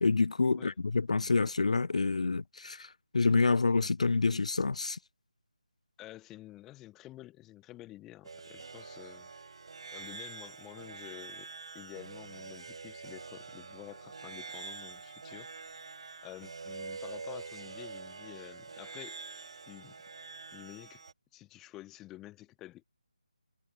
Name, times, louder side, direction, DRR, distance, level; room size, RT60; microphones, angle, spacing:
voice 1, 0.0-5.0, left 4 dB, 60° left, 0.3 m, -28 dB
voice 2, 6.0-9.3 9.9-11.5 11.7-15.8 16.2-19.2 19.7-20.0 20.5-21.0 21.3-22.8, left 16 dB, 5° left, 1.2 m, -50 dB
sound 1, 8.2-21.1, right 4 dB, 40° right, 1.9 m, -46 dB
hypercardioid pair, 180°, 4 cm